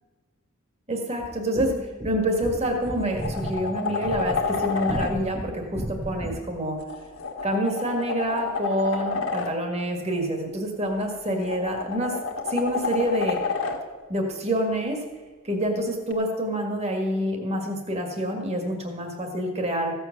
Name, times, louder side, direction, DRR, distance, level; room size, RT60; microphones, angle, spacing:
voice 1, 0.9-6.8 7.4-12.2 12.5-13.4 14.1-15.0 15.4-19.9, equal, 30° right, 3 dB, 2.0 m, -27 dB
sound 1, 1.2-6.6, right 1 dB, 15° right, 0.5 m, -35 dB
sound 2, 2.2-2.4 2.8-5.1 6.8-9.5 11.0-13.8 16.1-16.2, left 5 dB, 75° left, 1.7 m, -30 dB
15.5 x 8.0 x 6.7 m, 1.3 s
head